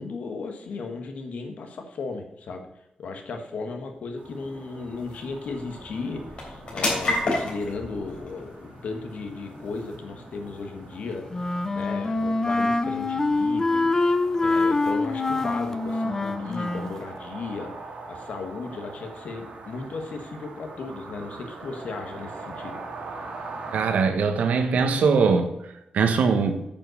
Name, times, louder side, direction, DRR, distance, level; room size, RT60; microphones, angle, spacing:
voice 1, 0.0-2.7 3.0-11.2 11.7-13.9 14.4-17.7 18.1-22.8, left 4 dB, 70° left, 5 dB, 1.5 m, -35 dB
sound 1, 3.4-18.2, left 2 dB, 50° left, 3.3 m, -36 dB
sound 2, 4.2-23.9, right 3 dB, 70° right, 2.2 m, -43 dB
Wind instrument woodwind instrument, 11.3-16.9, left 2 dB, 20° left, 0.5 m, -25 dB
voice 2, 23.7-26.7, right 5 dB, 90° right, 7 dB, 1.2 m, -22 dB
8.9 x 5.4 x 6.4 m, 0.86 s
wide cardioid pair, 160°, 2 cm